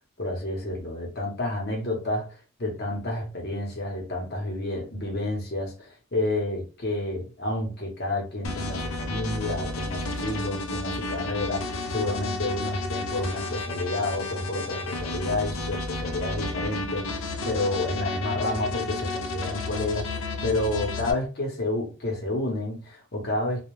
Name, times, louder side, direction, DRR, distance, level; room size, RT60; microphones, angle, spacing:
voice 1, 0.2-23.7, left 2 dB, 50° left, 0.9 m, -30 dB
sound 1, 8.4-21.1, left 2 dB, 65° left, 0.5 m, -32 dB
2.3 x 2.1 x 3.1 m
head